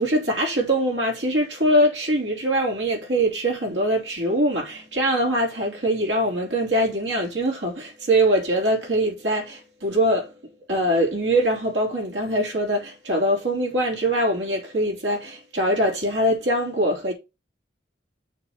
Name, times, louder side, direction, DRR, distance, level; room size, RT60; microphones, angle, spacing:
voice 1, 0.0-10.3 10.7-17.1, right 1 dB, 85° right, 3.1 m, -23 dB
6.5 x 3.3 x 5.9 m
head